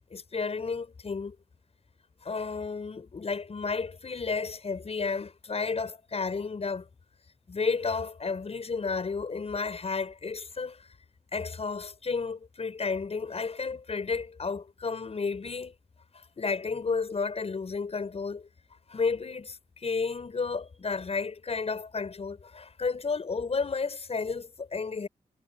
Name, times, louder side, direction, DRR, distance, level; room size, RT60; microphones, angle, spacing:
voice 1, 0.1-1.4 2.2-6.9 7.5-10.9 11.3-15.7 16.1-18.5 18.9-25.1, left 4 dB, 45° left, 6.9 m, -32 dB
wide cardioid pair, 115°, 14 cm